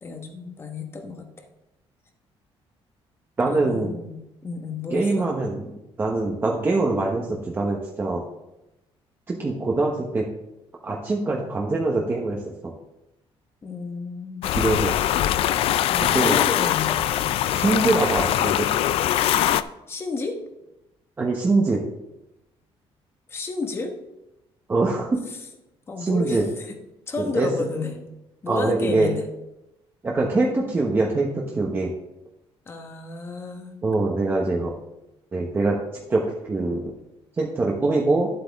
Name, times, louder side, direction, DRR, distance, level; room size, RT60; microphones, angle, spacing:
voice 1, 0.0-1.5 3.5-5.3 13.6-14.5 15.9-17.0 19.9-20.4 23.3-23.9 25.9-26.8 27.1-27.9 28.4-29.2 32.7-33.7, left 3 dB, 25° left, 4 dB, 1.2 m, -31 dB
voice 2, 3.4-3.9 4.9-5.7 6.0-8.2 9.3-10.3 10.8-12.7 14.5-14.9 16.0-16.4 17.5-18.7 21.2-21.8 24.7-25.2 26.0-26.4 27.2-27.5 28.5-29.1 30.0-31.9 33.8-34.7 35.3-35.8 36.1-36.9 37.4-38.3, right 3 dB, 20° right, -2 dB, 1.0 m, -23 dB
sound 1, 14.4-19.6, left 12 dB, 65° left, 0.4 m, -22 dB
11.5 x 7.9 x 3.6 m, 0.92 s
cardioid pair, 170°, 10 cm